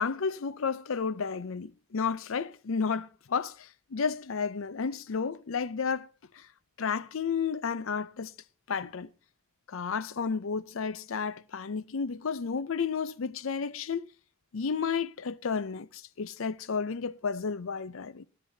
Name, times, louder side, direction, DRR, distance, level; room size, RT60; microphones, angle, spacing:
voice 1, 0.0-6.1 6.4-6.5 6.8-8.3 8.7-9.1 9.7-14.1 14.5-18.3, left 5 dB, 70° left, 0.6 m, -32 dB
19.5 x 12.0 x 2.7 m
head